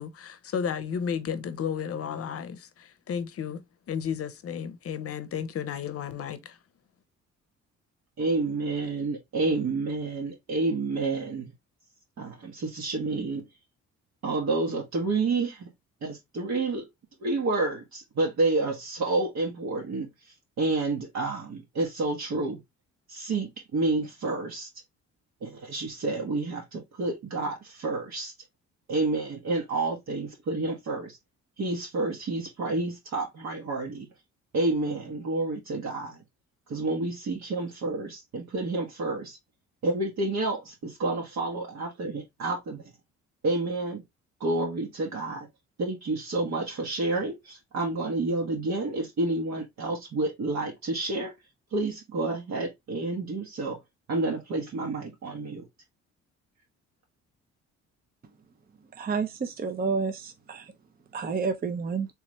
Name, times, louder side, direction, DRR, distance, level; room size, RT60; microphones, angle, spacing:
voice 1, 0.0-6.6, left 7 dB, 50° left, 0.7 m, -33 dB
voice 2, 8.2-11.5 12.2-13.4 14.2-15.7 16.0-16.9 17.2-20.1 20.6-22.6 23.1-24.7 25.4-28.3 28.9-31.2 31.6-34.1 34.5-36.2 36.7-39.4 39.8-42.9 43.4-44.0 44.4-45.5 45.8-51.3 51.7-53.8 54.1-55.6, right 2 dB, 60° right, 1.3 m, -29 dB
voice 3, 59.0-60.6 61.1-62.1, right 5 dB, 30° right, 0.6 m, -29 dB
3.4 x 3.2 x 3.0 m
cardioid pair, 90°, 30 cm